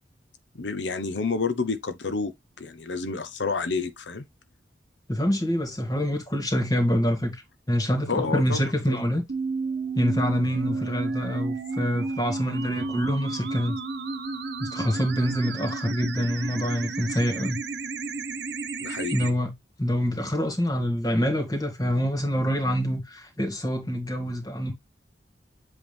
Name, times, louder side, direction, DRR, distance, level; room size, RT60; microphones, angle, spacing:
voice 1, 0.6-2.3 2.6-4.2 8.1-9.0 18.8-19.1, left 4 dB, 90° left, 0.9 m, -29 dB
voice 2, 5.1-7.4 7.7-9.2 10.0-13.8 14.6-17.6 19.1-19.5 19.8-24.7, equal, 20° left, 2.1 m, -26 dB
sound 1, 9.3-19.3, right 4 dB, 70° right, 1.1 m, -32 dB
7.9 x 3.6 x 3.4 m
head